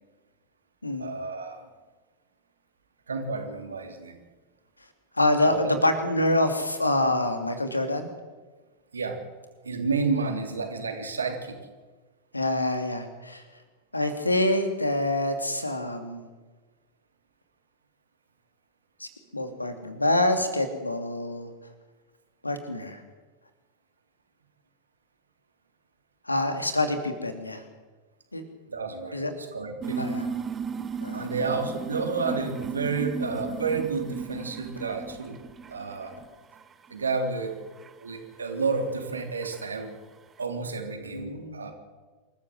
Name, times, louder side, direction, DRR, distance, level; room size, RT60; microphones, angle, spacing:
voice 1, 1.0-1.7 3.1-4.2 5.4-5.7 8.9-9.2 9.6-11.6 28.7-30.2 31.1-35.4 35.7-36.1 36.9-37.5 38.0-39.9 40.4-41.7, right 4 dB, 75° right, 4 dB, 3.4 m, -30 dB
voice 2, 5.2-8.1 12.3-13.4 13.9-16.3 19.0-21.5 22.4-23.0 26.3-27.6 28.3-28.4 29.1-29.3 30.0-30.2 31.0-31.3 41.1-41.6, left 1 dB, 85° left, 7 dB, 2.7 m, -26 dB
sound 1, 29.8-36.2 36.5-37.1 37.8-37.9 38.8-38.9 39.4-39.6, right 5 dB, 20° right, 1.3 m, -35 dB
26.5 x 14.0 x 7.9 m, 1.3 s
figure-of-eight pair, 90°, 0 cm